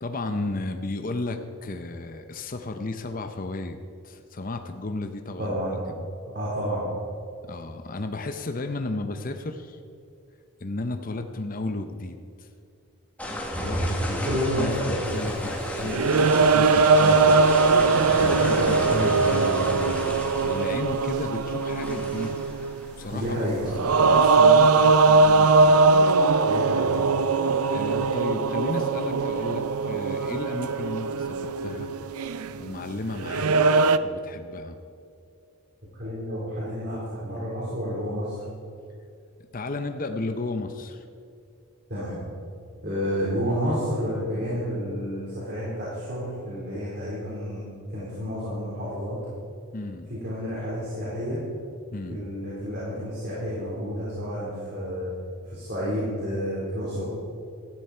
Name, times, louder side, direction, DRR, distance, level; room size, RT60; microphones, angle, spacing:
voice 1, 0.0-3.8 4.0-5.5 5.9-6.1 7.5-9.8 10.6-12.5 13.6-14.3 14.6-17.4 18.2-22.4 23.0-23.4 24.0-25.8 27.7-31.9 32.6-34.8 39.5-41.1 49.7-50.1 51.9-52.3, left 2 dB, 40° left, 6 dB, 0.7 m, -34 dB
voice 2, 5.4-5.7 6.3-6.9 14.2-14.8 23.1-23.6 26.4-27.0 35.9-38.3 41.9-42.2 42.8-47.6 47.9-49.2 50.1-51.4 52.1-55.1 55.5-57.0, equal, 50° right, -8 dB, 4.2 m, -30 dB
sound 1, 13.2-25.8, equal, 5° left, 1.7 m, -32 dB
sound 2, 15.1-15.2 15.7-22.9 23.6-34.0, right 4 dB, 90° right, 0.6 m, -21 dB
16.5 x 13.5 x 4.5 m, 2.5 s
head